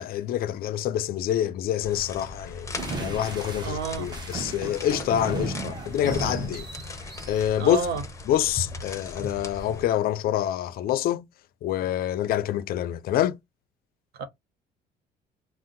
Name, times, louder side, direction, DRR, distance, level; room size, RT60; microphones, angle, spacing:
voice 1, 0.0-2.7 3.0-6.7 7.3-7.8 8.3-11.3 11.6-13.4, left 11 dB, 60° left, 0.4 m, -26 dB
sound 1, 1.8-9.9, left 2 dB, 20° left, 0.6 m, -39 dB
sound 2, 2.8-7.9, right 2 dB, 25° right, 0.8 m, -35 dB
voice 2, 3.6-4.1 7.6-8.0 14.2-14.3, right 5 dB, 65° right, 0.7 m, -29 dB
2.6 x 2.0 x 3.7 m
cardioid pair, 110°, 17 cm